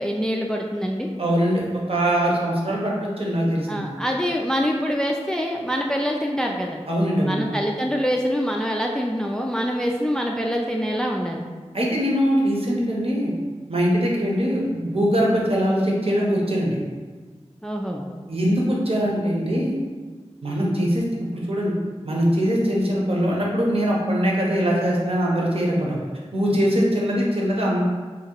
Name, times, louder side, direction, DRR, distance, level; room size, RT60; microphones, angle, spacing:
voice 1, 0.0-1.1 3.7-6.8 7.2-11.4 17.6-18.1, equal, 5° left, 1 dB, 0.3 m, -25 dB
voice 2, 1.2-3.9 6.9-7.5 11.7-13.3 13.7-16.8 18.3-19.7 20.4-21.0 21.3-21.7 22.0-26.0 26.3-27.8, equal, 55° right, -3 dB, 0.9 m, -22 dB
2.8 x 2.8 x 4.4 m, 1.4 s
wide cardioid pair, 60°, 11 cm